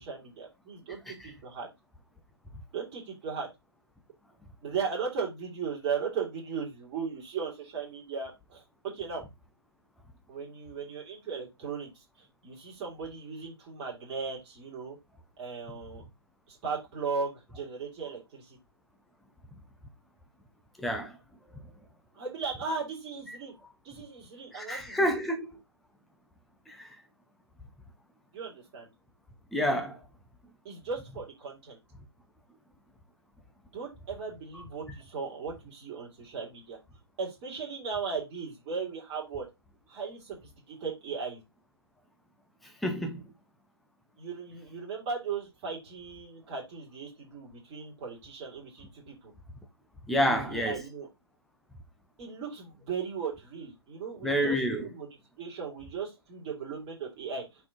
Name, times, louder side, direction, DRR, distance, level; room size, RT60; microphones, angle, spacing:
voice 1, 0.0-1.7 2.7-3.5 4.6-9.2 10.3-11.9 12.2-15.0 15.4-16.0 16.5-18.6 22.1-23.5 23.8-25.1 28.3-28.9 30.6-31.8 33.7-36.8 37.2-39.4 39.9-40.4 40.7-41.4 44.2-49.3 50.1-51.1 52.2-55.1 55.4-57.4, right 5 dB, 20° right, 2.4 m, -37 dB
voice 2, 20.8-21.2 23.3-23.4 24.5-25.5 26.7-27.0 29.5-30.0 42.6-43.3 50.1-50.8 54.2-54.9, equal, ahead, 0.6 m, -29 dB
5.9 x 4.6 x 3.8 m
figure-of-eight pair, 145°, 14 cm